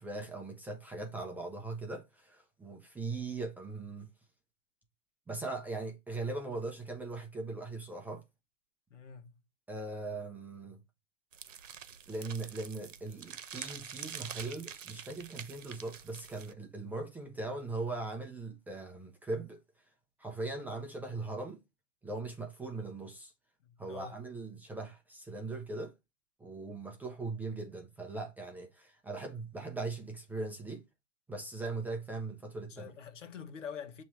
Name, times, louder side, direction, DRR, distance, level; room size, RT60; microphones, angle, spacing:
voice 1, 0.0-4.1 5.3-8.2 9.7-10.8 12.1-19.6 20.2-21.6 22.0-23.3 23.8-25.9 26.4-30.8 31.3-32.9, right 3 dB, 5° right, 0.5 m, -40 dB
voice 2, 8.9-9.3 23.6-24.2 32.7-34.0, left 7 dB, 75° left, 1.3 m, -45 dB
sound 1, 11.3-16.5, right 8 dB, 80° right, 0.9 m, -46 dB
7.0 x 3.1 x 4.5 m
hypercardioid pair, 125°, 37 cm